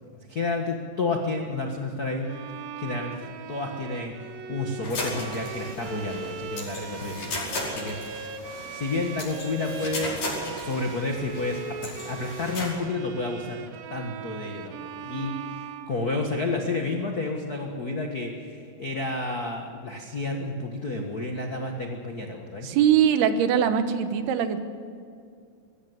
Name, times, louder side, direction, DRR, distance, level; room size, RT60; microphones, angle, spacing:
voice 1, 0.0-2.3 2.8-3.2 3.5-8.3 8.7-10.2 10.5-13.6 13.9-22.7, left 3 dB, 80° left, 2 dB, 0.8 m, -31 dB
Bowed string instrument, 2.2-16.5, right 7 dB, 75° right, 2.5 m, -39 dB
sound 1, 4.8-12.7, left 2 dB, 55° left, 6.7 m, -36 dB
voice 2, 22.6-24.6, right 8 dB, 90° right, 9 dB, 3.2 m, -22 dB
21.5 x 16.0 x 8.0 m, 2.3 s
omnidirectional pair, 4.4 m